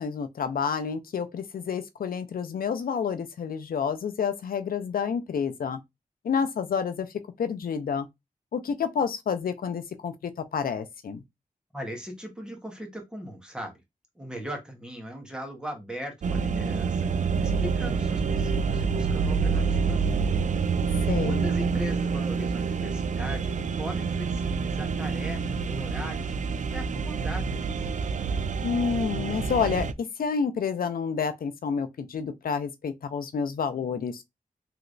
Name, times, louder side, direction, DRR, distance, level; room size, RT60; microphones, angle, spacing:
voice 1, 0.0-5.8 6.2-7.1 7.4-8.1 8.5-11.2 21.1-21.5 28.6-34.2, left 6 dB, 80° left, 0.4 m, -29 dB
voice 2, 11.7-13.8 14.1-17.1 17.4-20.3 20.8-26.3 26.7-28.1, equal, 5° right, 1.2 m, -39 dB
sound 1, 16.2-29.9, right 5 dB, 60° right, 0.4 m, -27 dB
3.2 x 2.9 x 2.6 m
wide cardioid pair, 75°, 15 cm